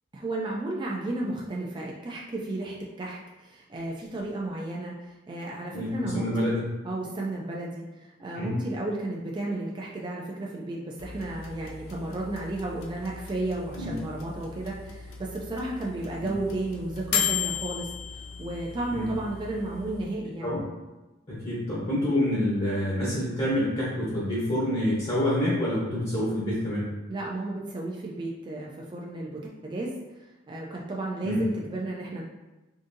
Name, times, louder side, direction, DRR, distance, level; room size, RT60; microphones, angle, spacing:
voice 1, 0.1-6.6 6.8-17.9 18.4-20.5 27.1-29.9 30.5-32.2, right 2 dB, 25° right, -3 dB, 0.3 m, -33 dB
voice 2, 5.7-6.6 8.3-8.5 13.7-13.9 18.9-19.1 20.4-20.6 21.3-26.9 31.2-31.4, left 1 dB, 30° left, -7 dB, 0.8 m, -27 dB
sound 1, 11.0-20.1, left 8 dB, 85° left, 0.5 m, -36 dB
3.7 x 2.6 x 2.6 m, 1.1 s
head